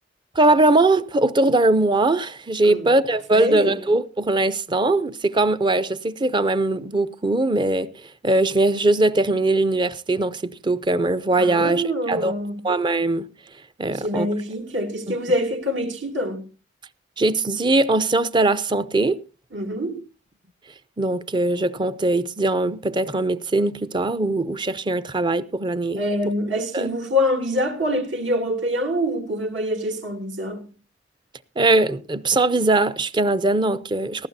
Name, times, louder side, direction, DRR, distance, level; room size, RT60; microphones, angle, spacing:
voice 1, 0.4-7.9 8.2-12.3 12.6-13.3 13.8-14.3 15.1-15.2 17.2-19.2 21.0-26.0 26.7-26.9 31.6-34.3, right 2 dB, 25° right, 0.5 m, -21 dB
voice 2, 2.6-2.9 3.3-3.8 11.4-12.7 13.9-16.4 19.5-20.0 25.9-30.7, equal, 75° right, 2.8 m, -25 dB
18.0 x 15.0 x 2.7 m
head